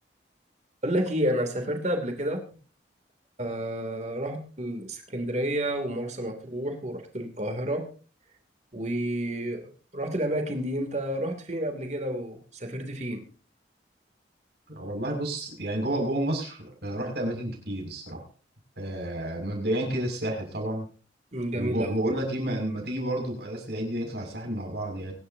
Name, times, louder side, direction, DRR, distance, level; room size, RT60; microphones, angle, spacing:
voice 1, 0.8-2.4 3.4-7.9 8.7-13.2 21.3-22.0, right 1 dB, 40° right, 5 dB, 2.9 m, -30 dB
voice 2, 14.7-18.2 18.8-20.9 21.5-25.1, right 1 dB, 65° right, 1 dB, 6.6 m, -30 dB
24.0 x 12.0 x 2.8 m, 0.38 s
head